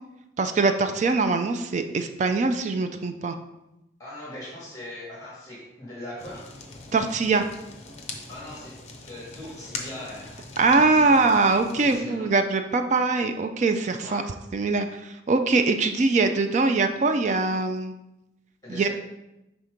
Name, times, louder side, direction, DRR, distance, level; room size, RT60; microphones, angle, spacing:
voice 1, 0.4-3.4 6.9-7.4 10.6-14.2 14.5-17.9 18.7-18.9, right 3 dB, 40° right, 7 dB, 0.3 m, -22 dB
voice 2, 4.0-6.5 8.3-8.7 9.1-10.4 10.8-11.3 11.8-12.3 14.0-14.3 18.6-18.9, left 1 dB, 20° left, -7 dB, 1.5 m, -40 dB
Fire, 6.2-12.0, left 3 dB, 35° left, 0.7 m, -41 dB
5.7 x 3.6 x 5.0 m, 0.93 s
head